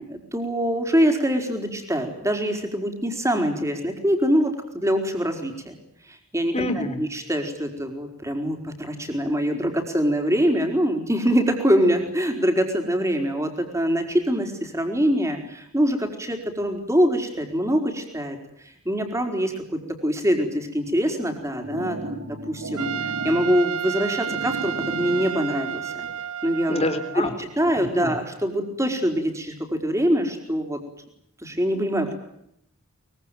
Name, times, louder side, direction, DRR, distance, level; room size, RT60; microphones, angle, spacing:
voice 1, 0.3-5.7 6.0-18.4 18.6-26.1 26.4-26.8 27.1-30.8 31.4-32.1, equal, 15° right, 4 dB, 4.8 m, -24 dB
voice 2, 6.5-7.1 26.7-27.3 27.8-28.2, left 2 dB, 30° left, 7 dB, 3.8 m, -27 dB
sound 1, 21.2-26.2, right 1 dB, 75° right, 3.6 m, -36 dB
Trumpet, 22.8-27.4, right 9 dB, 90° right, 1.4 m, -31 dB
24.0 x 23.5 x 9.4 m, 0.75 s
head